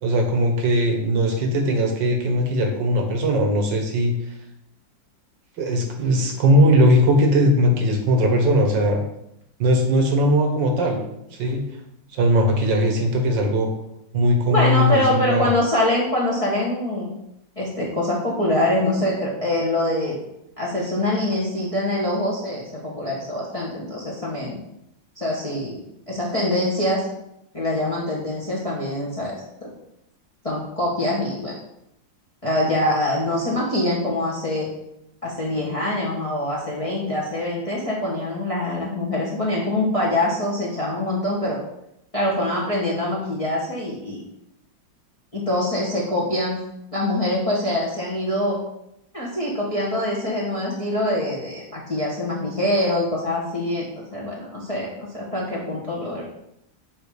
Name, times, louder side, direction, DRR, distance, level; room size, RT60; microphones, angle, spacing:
voice 1, 0.0-4.1 5.6-9.0 9.6-11.0 11.4-11.7 12.1-13.7 14.1-15.4, equal, 80° right, 3 dB, 1.8 m, -19 dB
voice 2, 14.5-17.1 17.6-20.2 20.6-24.6 25.2-25.8 26.1-27.0 27.5-29.7 30.4-31.5 32.4-34.7 35.2-41.6 42.1-44.3 45.3-46.6 46.9-48.6 49.1-56.2, left 1 dB, 20° left, -5 dB, 1.2 m, -24 dB
7.9 x 3.1 x 4.9 m, 0.80 s
omnidirectional pair, 2.0 m